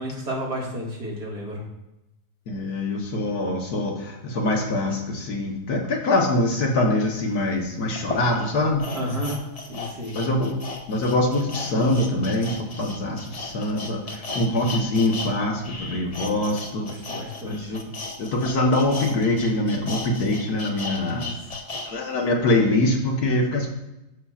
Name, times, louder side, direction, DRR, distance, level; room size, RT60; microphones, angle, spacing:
voice 1, 0.0-1.6 8.9-10.1 16.5-16.6 16.9-17.9 21.1-21.4, equal, 85° right, -4 dB, 2.6 m, -32 dB
voice 2, 2.5-8.8 10.1-10.6 10.9-16.9 17.4-17.8 18.2-21.2 21.8-23.7, left 1 dB, 70° left, 1 dB, 1.7 m, -24 dB
sound 1, 7.2-7.3 8.0-15.3 15.6-21.9 22.3-22.4, left 3 dB, 45° left, 0.4 m, -35 dB
13.0 x 5.6 x 2.4 m, 0.94 s
omnidirectional pair, 1.7 m